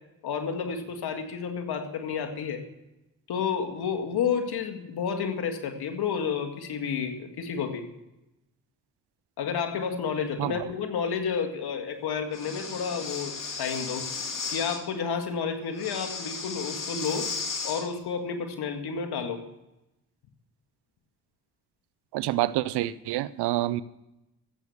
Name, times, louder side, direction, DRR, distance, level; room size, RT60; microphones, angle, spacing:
voice 1, 0.2-2.6 3.3-7.9 9.4-14.1 14.5-17.3 17.6-19.4, left 6 dB, 75° left, 5 dB, 1.9 m, -30 dB
Breathing, 12.3-14.8 15.7-17.9, left 4 dB, 55° left, 2.7 m, -35 dB
voice 2, 22.1-23.8, right 15 dB, 85° right, 18 dB, 0.6 m, -27 dB
14.5 x 7.9 x 7.1 m, 0.93 s
supercardioid pair, 50°, 39 cm